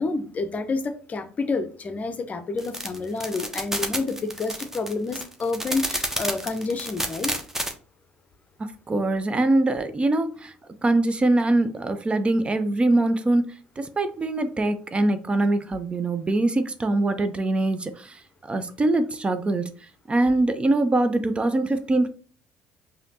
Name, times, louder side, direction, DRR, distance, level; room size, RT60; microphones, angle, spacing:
voice 1, 0.0-7.3, left 3 dB, 35° left, 0.6 m, -29 dB
sound 1, 2.6-7.7, right 1 dB, 10° right, 0.9 m, -29 dB
voice 2, 8.9-10.5 10.8-18.2 18.5-19.7 20.1-22.1, right 2 dB, 25° right, 0.5 m, -23 dB
5.0 x 2.8 x 2.7 m
hypercardioid pair, 55°, 4 cm